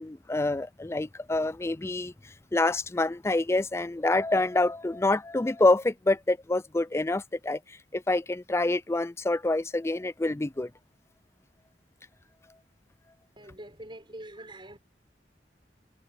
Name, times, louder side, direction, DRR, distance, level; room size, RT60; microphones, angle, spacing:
voice 1, 0.0-2.1 2.5-7.6 7.9-10.7, left 2 dB, 15° left, 0.4 m, -26 dB
voice 2, 13.4-14.8, right 1 dB, 30° right, 6.4 m, -44 dB
head